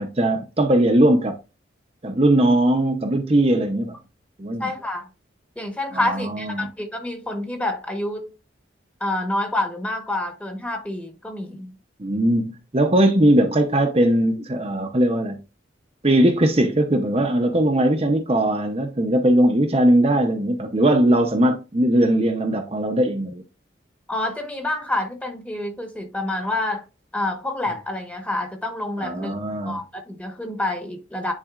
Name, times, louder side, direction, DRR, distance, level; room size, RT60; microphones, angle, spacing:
voice 1, 0.0-1.4 2.0-4.0 4.4-4.7 5.9-6.7 12.0-15.4 16.0-23.4 29.0-29.8, right 1 dB, 30° right, 0.7 m, -19 dB
voice 2, 4.6-5.1 5.6-8.3 9.0-11.7 24.1-26.8 27.1-29.3 29.7-31.3, left 1 dB, 5° left, 1.2 m, -28 dB
9.9 x 4.1 x 2.5 m
head